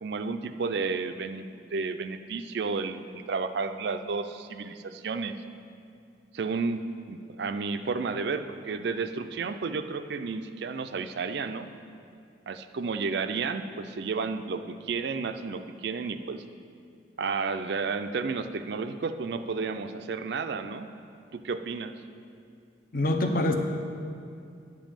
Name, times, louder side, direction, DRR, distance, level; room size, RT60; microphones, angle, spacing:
voice 1, 0.0-5.4 6.3-11.7 12.5-16.4 17.2-20.9 21.3-21.9, right 4 dB, 60° right, 9 dB, 0.4 m, -32 dB
voice 2, 22.9-23.5, left 1 dB, 50° left, 5 dB, 0.7 m, -25 dB
9.8 x 5.2 x 7.4 m, 2.4 s
head